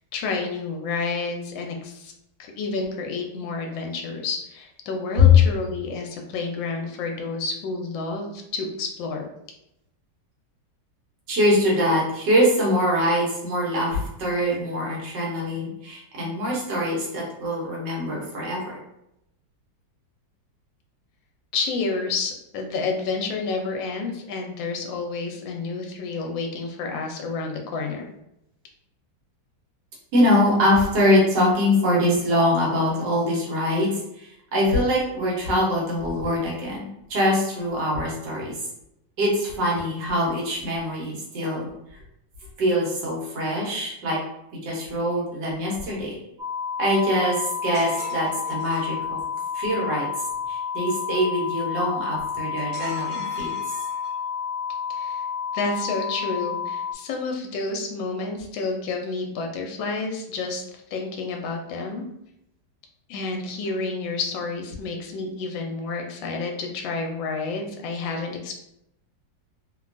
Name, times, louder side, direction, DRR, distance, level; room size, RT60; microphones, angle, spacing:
voice 1, 0.1-2.1 2.4-9.3 21.5-28.1 54.9-55.3 55.5-60.6 60.9-62.0 63.1-68.6, left 4 dB, 85° left, 2 dB, 1.3 m, -30 dB
voice 2, 11.3-18.8 30.1-36.8 37.1-38.6 39.2-41.7 42.6-44.2 44.6-46.1 46.8-49.2 49.5-50.1 50.5-53.5, left 1 dB, 70° right, -4 dB, 1.5 m, -23 dB
sound 1, 46.4-56.9, left 7 dB, 90° right, 0.5 m, -30 dB
sound 2, 47.7-48.9 52.7-54.3, right 2 dB, 40° right, 1.2 m, -41 dB
3.3 x 2.2 x 2.4 m, 0.81 s
omnidirectional pair, 2.0 m